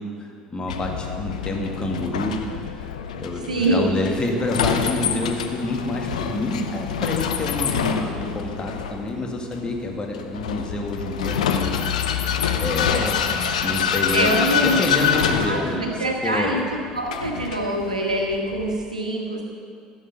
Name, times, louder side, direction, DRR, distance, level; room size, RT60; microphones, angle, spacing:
voice 1, 0.0-2.4 2.8-2.9 3.1-12.3 12.6-16.6, left 2 dB, 25° left, 2 dB, 1.9 m, -28 dB
Vehicle, 0.7-18.7, left 7 dB, 75° left, 0.7 m, -26 dB
voice 2, 3.5-3.9 14.1-19.4, right 1 dB, 90° right, 1 dB, 1.4 m, -25 dB
15.0 x 6.7 x 5.9 m, 2.3 s
figure-of-eight pair, 65°, 4 cm